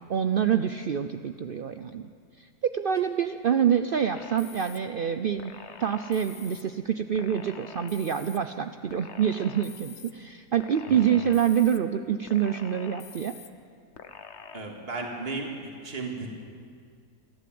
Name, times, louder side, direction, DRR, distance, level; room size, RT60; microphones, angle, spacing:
voice 1, 0.1-2.1 2.4-5.5 5.8-13.3, right 8 dB, 75° right, 9 dB, 0.5 m, -26 dB
sound 1, 4.1-4.8 5.4-6.6 7.1-8.4 8.9-10.1 10.6-11.8 12.3-13.5 14.0-14.6, left 6 dB, 50° left, 1.0 m, -46 dB
voice 2, 14.5-16.3, right 3 dB, 35° right, 0 dB, 2.5 m, -35 dB
29.0 x 11.5 x 7.8 m, 2.1 s
omnidirectional pair, 1.7 m